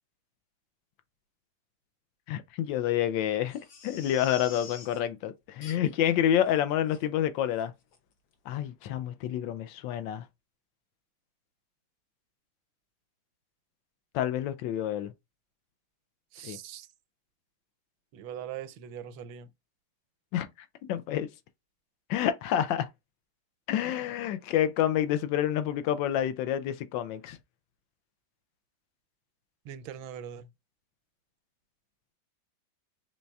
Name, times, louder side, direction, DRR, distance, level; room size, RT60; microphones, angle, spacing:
voice 1, 2.3-7.7 8.5-10.2 14.1-15.1 16.4-16.6 20.3-20.5 20.9-21.3 22.1-22.9 23.7-27.4, left 10 dB, 80° left, 1.3 m, -28 dB
Crying sobbing, 3.5-5.0 5.6-6.1 6.5-6.6 6.9-7.0 7.5-7.7 7.9-8.0, left 5 dB, 55° left, 1.2 m, -47 dB
voice 2, 16.3-16.9 18.1-19.5 29.6-30.5, right 9 dB, 85° right, 1.4 m, -41 dB
5.2 x 3.3 x 2.3 m
omnidirectional pair, 2.1 m